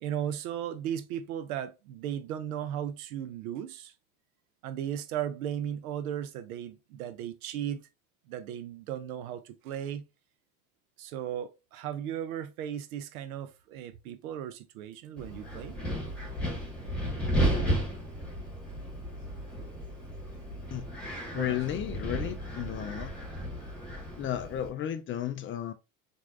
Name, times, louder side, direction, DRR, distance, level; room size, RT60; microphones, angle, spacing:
voice 1, 0.0-3.9 4.6-7.9 8.3-10.1 11.0-15.8 21.3-21.6, right 10 dB, 80° right, 0.7 m, -36 dB
Wind, 15.2-24.7, right 1 dB, 5° left, 1.6 m, -33 dB
voice 2, 21.3-23.1 24.2-25.7, left 11 dB, 30° left, 0.4 m, -33 dB
4.3 x 2.6 x 2.4 m
supercardioid pair, 95°, 43 cm